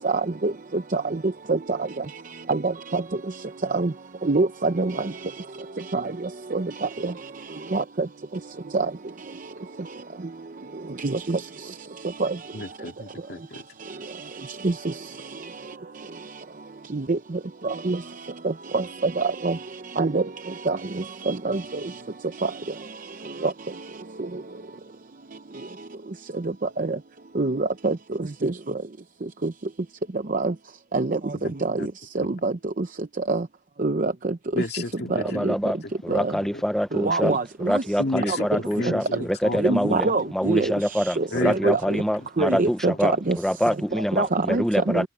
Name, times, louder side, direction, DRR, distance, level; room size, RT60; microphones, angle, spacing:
voice 1, 0.0-0.5 0.9-1.0 1.5-1.6 2.5-3.0 3.7-3.9 4.3-4.9 5.9-6.0 6.5-6.6 7.0-7.1 7.7-7.8 8.7-8.9 11.0-11.4 12.2-12.3 14.6-14.7 16.9-17.2 17.6-18.0 18.7-18.8 19.2-19.6 20.0-20.2 20.7-20.8 21.3-21.6 23.4-23.5 26.9-27.0 27.4-27.9 28.4-28.5 30.3-30.5 30.9-31.2 31.6-31.7 32.2-32.5 33.3-33.4 33.8-34.1 35.4-35.5 36.1-36.2 37.0-37.8 38.3-38.4 39.6-40.7 41.2-41.8 42.4-43.4 44.2-45.0, right 3 dB, 45° right, 0.7 m, -23 dB
voice 2, 12.5-13.6 31.4-31.9 32.2-32.3 34.5-35.4 35.8-35.9 36.4-36.6 38.0-39.9 40.4-40.7 41.3-42.1, left 2 dB, 55° left, 2.2 m, -32 dB
voice 3, 35.2-35.8 36.0-37.4 37.7-45.1, equal, ahead, 0.8 m, -25 dB
head